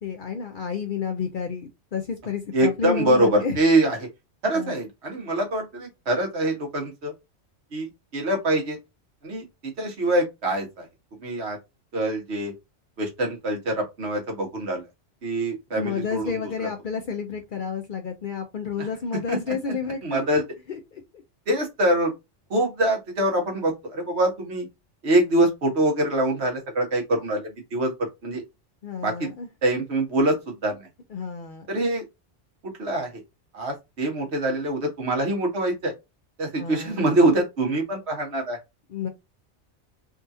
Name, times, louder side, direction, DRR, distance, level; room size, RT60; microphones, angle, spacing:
voice 1, 0.0-3.6 4.5-4.8 15.7-20.2 20.7-21.0 28.8-29.5 31.1-31.7 36.6-37.0 38.9-39.1, left 6 dB, 60° left, 0.6 m, -31 dB
voice 2, 2.5-4.0 4.4-7.1 7.7-7.9 8.1-8.8 9.2-10.8 11.2-11.6 11.9-12.5 13.0-14.9 15.2-16.4 19.3-19.5 20.0-20.4 21.5-22.1 22.5-24.7 25.0-28.4 29.0-29.3 29.6-30.9 31.7-32.0 32.8-33.1 33.5-35.9 36.4-38.6, right 1 dB, 65° right, 1.4 m, -24 dB
3.6 x 2.4 x 2.6 m
omnidirectional pair, 1.2 m